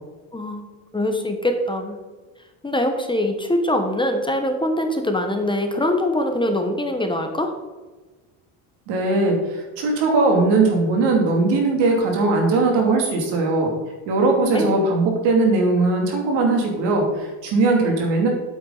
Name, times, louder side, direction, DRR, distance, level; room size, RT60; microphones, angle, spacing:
voice 1, 0.3-0.7 0.9-2.0 2.6-7.5 14.5-14.7, left 1 dB, 10° left, 5 dB, 1.1 m, -23 dB
voice 2, 8.9-13.7 14.1-18.3, right 3 dB, 80° right, 1 dB, 2.8 m, -19 dB
8.8 x 8.0 x 4.0 m, 1.3 s
cardioid pair, 105°, 42 cm